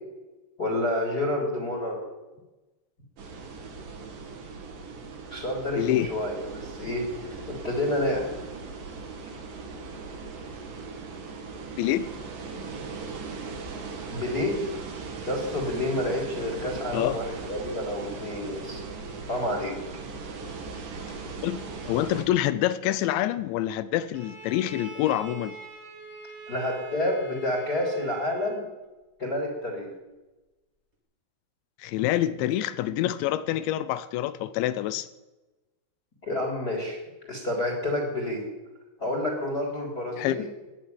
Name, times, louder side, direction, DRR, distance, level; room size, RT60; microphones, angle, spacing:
voice 1, 0.6-2.0 5.3-8.3 14.1-14.6 15.2-18.8 19.3-19.7 26.5-28.6 29.2-29.9 36.2-37.0 37.2-38.4 39.0-40.5, left 1 dB, 25° left, 1 dB, 3.4 m, -29 dB
sound 1, 3.2-22.2, right 4 dB, 55° right, 3.2 m, -39 dB
voice 2, 5.8-6.1 11.8-12.1 16.9-17.2 21.4-25.6 31.8-35.1 40.2-40.5, left 13 dB, 80° left, 15 dB, 3.0 m, -26 dB
Bowed string instrument, 24.1-28.7, right 2 dB, 20° right, 2.2 m, -43 dB
20.0 x 7.5 x 9.3 m, 1.1 s
omnidirectional pair, 5.4 m